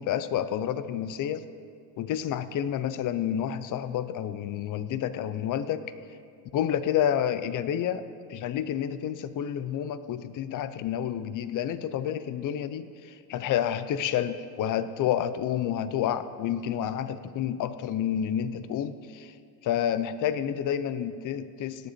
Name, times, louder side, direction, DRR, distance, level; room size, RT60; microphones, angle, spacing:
voice 1, 0.0-1.5 2.0-5.9 6.5-8.0 8.3-19.3 19.6-21.9, left 10 dB, 40° left, 14 dB, 0.7 m, -29 dB
17.0 x 9.9 x 4.3 m, 2.2 s
supercardioid pair, 110°, 49 cm